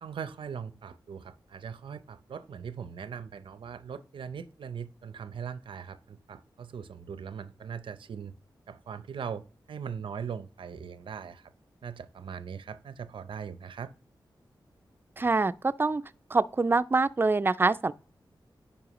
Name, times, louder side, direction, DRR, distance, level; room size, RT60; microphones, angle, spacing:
voice 1, 0.0-8.3 8.7-9.4 9.7-11.5 11.8-13.9, right 7 dB, 85° right, 0.5 m, -40 dB
voice 2, 15.2-16.0 16.3-17.9, right 3 dB, 25° right, 0.4 m, -25 dB
9.7 x 5.2 x 3.0 m
wide cardioid pair, 75°, 8 cm